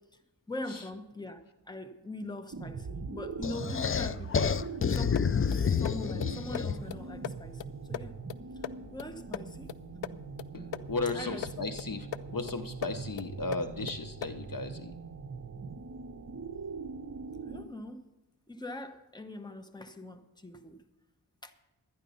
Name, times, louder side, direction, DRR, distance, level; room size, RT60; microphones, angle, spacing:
voice 1, 0.5-4.5 4.9-5.2 5.5-8.2 8.5-8.6 8.9-9.7 11.1-11.5 11.8-11.9 17.5-18.0 18.5-20.8 21.4-21.5, left 1 dB, 10° left, 8 dB, 1.0 m, -42 dB
sound 1, 2.5-17.6, right 4 dB, 35° right, 0.8 m, -42 dB
sound 2, 3.4-7.0, left 6 dB, 30° left, 0.4 m, -29 dB
sound 3, 4.8-14.5, left 10 dB, 85° left, 0.5 m, -43 dB
voice 2, 10.5-15.0, left 3 dB, 50° left, 9 dB, 0.8 m, -35 dB
12.0 x 9.9 x 5.5 m, 1.0 s
wide cardioid pair, 45°, 44 cm